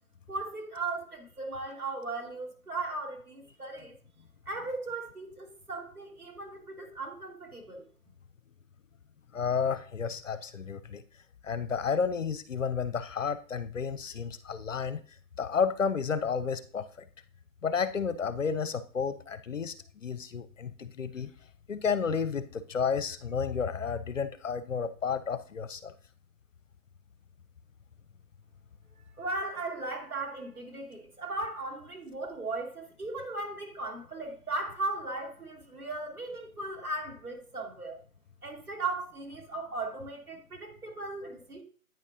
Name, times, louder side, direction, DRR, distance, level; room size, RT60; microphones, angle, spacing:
voice 1, 0.3-3.9 4.5-7.9 29.2-38.0 38.4-41.6, right 2 dB, 75° right, 2.2 m, -37 dB
voice 2, 9.3-11.0 11.4-15.0 15.4-16.9 17.6-21.3 21.7-25.9, left 6 dB, 60° left, 0.6 m, -31 dB
9.2 x 5.2 x 2.7 m
figure-of-eight pair, 155°, 45 cm